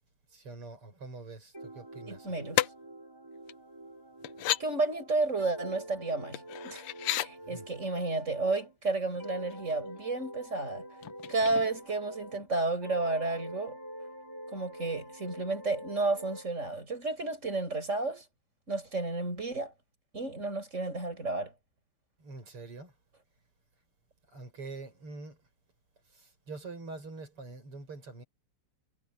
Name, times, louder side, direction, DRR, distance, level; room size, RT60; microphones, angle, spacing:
voice 1, 0.3-2.5 7.5-7.7 22.2-22.9 24.3-25.4 26.1-28.2, right 3 dB, 85° right, 7.4 m, -45 dB
sound 1, 1.5-8.8 9.1-12.5 12.8-16.5, right 1 dB, 10° right, 4.7 m, -46 dB
voice 2, 2.1-2.6 4.6-6.8 7.1-10.8 11.3-13.8 14.5-18.3 18.7-19.7 20.1-21.5, right 3 dB, 30° right, 7.0 m, -32 dB
sound 2, 2.5-2.7 3.5-3.6 4.2-4.6 6.3-7.3 9.0-9.2 9.5-10.0 11.0-12.0 12.3-12.5, left 14 dB, 80° left, 1.7 m, -32 dB
omnidirectional pair, 2.4 m